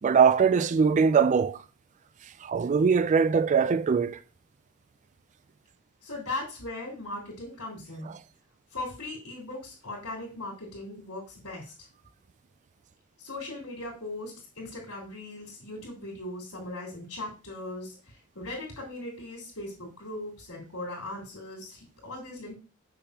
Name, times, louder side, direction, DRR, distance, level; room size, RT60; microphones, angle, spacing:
voice 1, 0.0-1.6 2.4-4.2 8.1-8.2, right 6 dB, 35° right, 0.3 m, -22 dB
voice 2, 6.0-8.1 8.7-11.7 13.2-22.6, left 2 dB, 90° left, 3.3 m, -39 dB
6.7 x 6.0 x 2.8 m
head